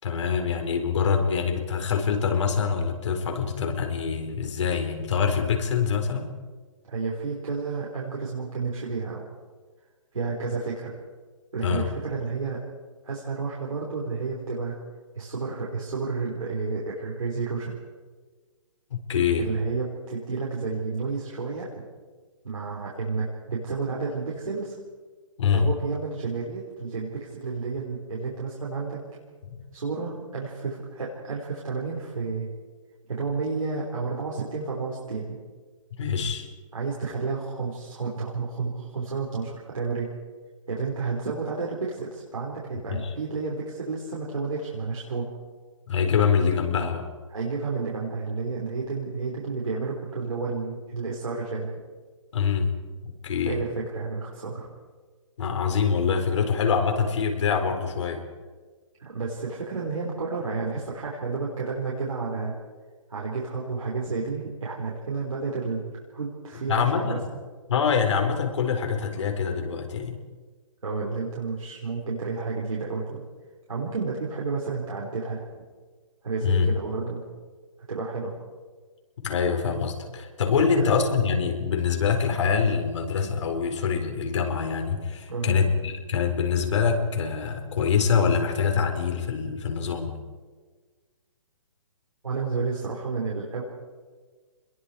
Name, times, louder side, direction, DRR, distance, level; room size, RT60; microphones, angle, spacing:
voice 1, 0.0-6.3 11.6-11.9 18.9-19.5 25.4-25.7 29.4-29.5 36.0-36.5 42.9-43.1 45.9-47.1 52.3-52.7 53.0-53.6 55.4-58.2 66.7-67.2 67.7-70.2 76.4-76.7 79.2-90.2, left 6 dB, 60° left, 4 dB, 4.5 m, -25 dB
voice 2, 6.8-9.3 10.1-10.9 11.5-12.6 13.0-14.8 15.2-17.8 19.4-21.8 22.4-24.8 25.5-29.0 29.7-32.5 33.1-35.4 36.7-40.1 40.7-45.3 47.3-51.7 53.4-54.7 59.0-62.6 63.1-67.2 70.8-73.2 73.7-75.4 76.2-77.2 77.9-78.3 80.6-81.0 85.3-85.5 92.2-93.6, right 4 dB, 90° right, -4 dB, 5.5 m, -31 dB
26.5 x 22.0 x 5.0 m, 1.4 s
hypercardioid pair, 145°, 17 cm